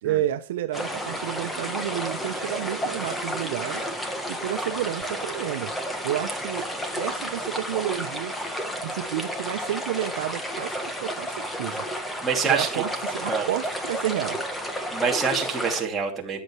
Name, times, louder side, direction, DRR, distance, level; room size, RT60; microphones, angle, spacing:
voice 1, 0.0-5.7 6.0-6.7 7.0-8.3 8.8-11.8 12.4-14.4, right 13 dB, 80° right, 0.9 m, -30 dB
sound 1, 0.7-15.8, equal, 5° left, 1.5 m, -31 dB
voice 2, 12.2-12.8 13.3-13.5 14.9-16.4, right 5 dB, 15° right, 2.7 m, -26 dB
14.0 x 9.5 x 3.2 m
supercardioid pair, 160°, 0 cm